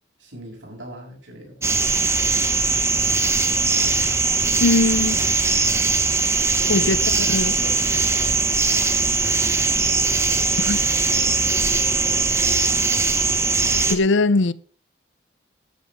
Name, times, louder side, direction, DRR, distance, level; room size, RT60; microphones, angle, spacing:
voice 1, 0.2-1.9 6.6-8.6 9.2-12.4, right 1 dB, 80° right, 7.1 m, -42 dB
sound 1, 1.6-14.0, right 4 dB, 15° right, 1.1 m, -20 dB
voice 2, 4.6-5.2 6.7-7.5 10.6-10.8 13.9-14.5, left 3 dB, 85° left, 0.7 m, -20 dB
13.0 x 12.5 x 3.7 m
head